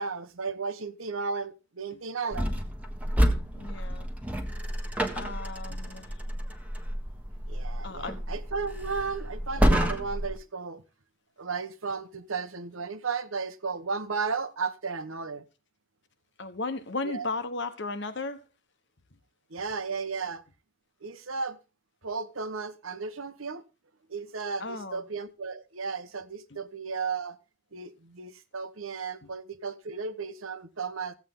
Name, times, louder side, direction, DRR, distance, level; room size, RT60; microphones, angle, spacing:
voice 1, 0.0-2.5 7.5-10.8 11.4-15.4 17.0-17.3 19.5-20.4 21.0-21.6 22.0-23.6 24.1-27.4 27.7-31.1, right 5 dB, 75° right, 1.1 m, -34 dB
sound 1, 2.3-10.4, equal, 5° right, 1.4 m, -29 dB
voice 2, 3.5-4.1 5.1-6.2 7.8-8.2 16.4-18.4 24.6-25.0 26.5-26.6, left 3 dB, 55° left, 1.3 m, -35 dB
15.5 x 8.4 x 3.8 m
head